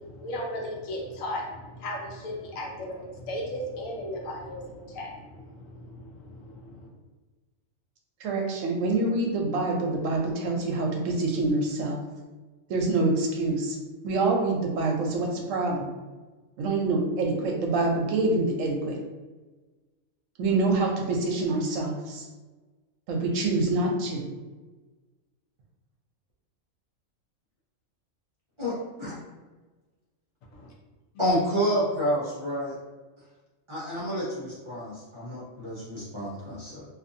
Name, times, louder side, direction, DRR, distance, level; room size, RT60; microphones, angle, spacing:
voice 1, 0.0-6.9 30.5-30.7, left 1 dB, 75° left, 0 dB, 1.0 m, -36 dB
voice 2, 8.2-12.0 12.7-13.8 14.0-15.9 16.6-18.9 20.4-22.3 23.1-24.3, right 2 dB, 75° right, 1 dB, 0.9 m, -26 dB
voice 3, 31.2-32.7 33.7-36.9, equal, 30° right, -8 dB, 0.6 m, -29 dB
2.6 x 2.5 x 2.6 m, 1.3 s
omnidirectional pair, 1.4 m